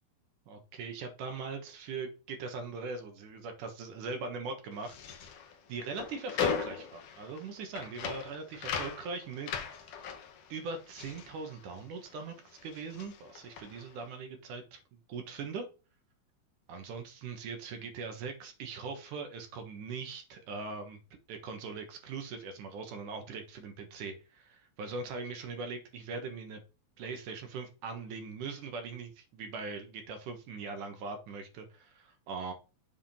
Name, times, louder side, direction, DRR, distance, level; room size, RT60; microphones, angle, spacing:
voice 1, 0.5-5.3 5.7-9.8 10.5-14.8 15.1-15.7 16.7-21.0 21.3-26.6 27.0-32.5, right 4 dB, 70° right, 5 dB, 2.6 m, -41 dB
sound 1, 4.7-12.2 12.5-14.0, left 7 dB, 85° left, 1.3 m, -38 dB
7.5 x 3.7 x 4.2 m, 0.32 s
omnidirectional pair, 4.1 m